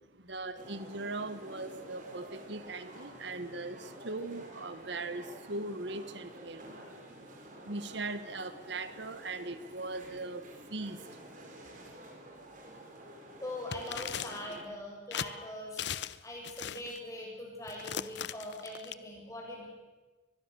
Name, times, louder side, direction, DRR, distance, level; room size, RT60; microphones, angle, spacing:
voice 1, 0.1-7.0 7.6-10.4 10.7-11.0 11.4-11.6, right 2 dB, 65° right, 12 dB, 1.2 m, -40 dB
sound 1, 0.6-14.6, right 1 dB, 40° right, 4.0 m, -50 dB
voice 2, 13.4-19.7, left 1 dB, 15° left, -1 dB, 6.9 m, -42 dB
sound 2, 13.7-14.6 15.1-15.3 15.8-16.2 16.4-17.0 17.7-18.9, left 9 dB, 60° left, 0.7 m, -38 dB
23.5 x 21.0 x 6.9 m, 1.3 s
head